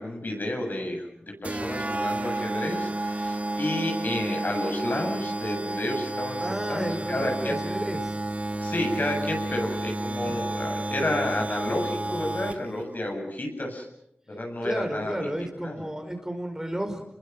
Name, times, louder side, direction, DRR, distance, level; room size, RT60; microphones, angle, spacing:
voice 1, 0.0-7.6 8.6-13.8 14.3-15.3 15.6-15.7, left 1 dB, 55° left, 2 dB, 7.9 m, -31 dB
sound 1, 1.4-12.8, right 2 dB, 40° right, 1.6 m, -31 dB
voice 2, 6.4-8.2 14.6-17.0, right 1 dB, 15° right, 5 dB, 4.9 m, -32 dB
30.0 x 22.0 x 6.2 m, 0.74 s
wide cardioid pair, 50°, 4 cm